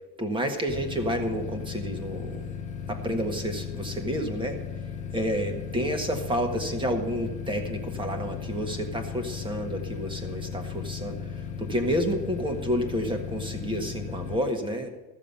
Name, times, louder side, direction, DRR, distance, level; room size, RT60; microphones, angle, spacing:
voice 1, 0.2-2.4 2.9-4.6 5.1-14.9, equal, 10° right, 5 dB, 1.6 m, -30 dB
sound 1, 0.7-14.4, left 7 dB, 15° left, 1.1 m, -36 dB
14.5 x 7.4 x 6.8 m, 1.1 s
supercardioid pair, 155°, 45 cm